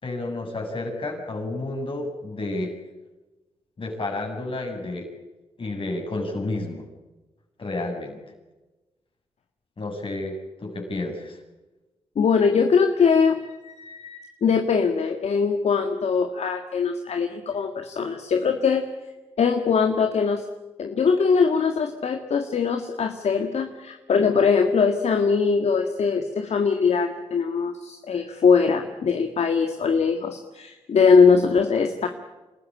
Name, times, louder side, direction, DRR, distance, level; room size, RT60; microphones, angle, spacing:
voice 1, 0.0-2.7 3.8-5.1 5.6-6.9 7.6-8.2 9.8-11.4, left 2 dB, 50° left, 2 dB, 7.5 m, -31 dB
voice 2, 12.2-18.9 19.4-20.4 20.8-32.1, left 5 dB, 70° left, 5 dB, 1.9 m, -21 dB
27.0 x 14.0 x 9.9 m, 1.1 s
cardioid pair, 60°, 11 cm